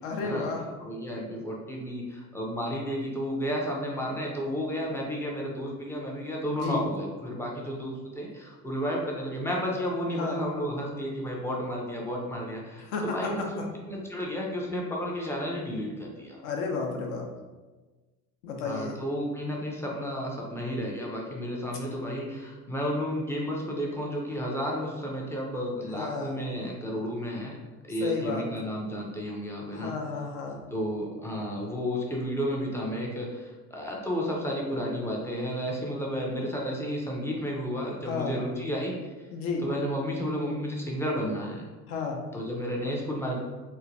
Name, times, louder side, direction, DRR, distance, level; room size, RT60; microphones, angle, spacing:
voice 1, 0.0-0.7 6.4-6.8 10.2-10.4 12.8-13.5 16.4-17.3 18.4-19.0 25.9-26.3 28.0-28.5 29.7-30.6 38.1-38.4 39.3-39.6 41.9-42.2, left 4 dB, 65° left, 1 dB, 0.7 m, -32 dB
voice 2, 0.8-16.4 18.6-27.5 27.9-30.0 30.7-38.9 39.6-41.6 42.3-43.4, equal, 5° left, -3 dB, 0.4 m, -32 dB
3.1 x 2.2 x 2.5 m, 1.3 s
figure-of-eight pair, 65°, 47 cm